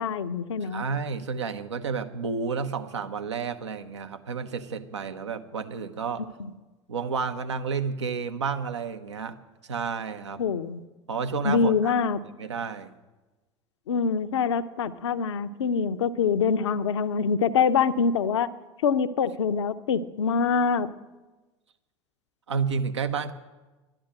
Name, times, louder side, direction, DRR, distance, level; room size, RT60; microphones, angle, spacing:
voice 1, 0.0-0.8 10.4-10.8 11.4-12.2 13.9-18.5 18.8-20.9, left 6 dB, 75° left, 11 dB, 0.6 m, -24 dB
voice 2, 0.6-6.2 6.9-9.3 9.7-10.4 11.1-11.9 12.4-12.9 22.5-23.3, right 5 dB, 80° right, 8 dB, 0.8 m, -31 dB
11.5 x 10.0 x 8.9 m, 1.2 s
figure-of-eight pair, 70°, 15 cm